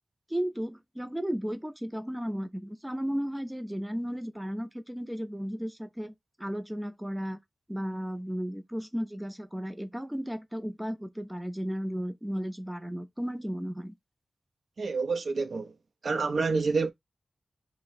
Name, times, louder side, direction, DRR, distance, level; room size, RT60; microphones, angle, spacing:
voice 1, 0.3-7.4 7.7-13.9, equal, 5° right, 0.4 m, -34 dB
voice 2, 14.8-15.7 16.0-16.9, right 4 dB, 70° right, 0.4 m, -28 dB
2.6 x 2.0 x 3.9 m
wide cardioid pair, 95°, 0 cm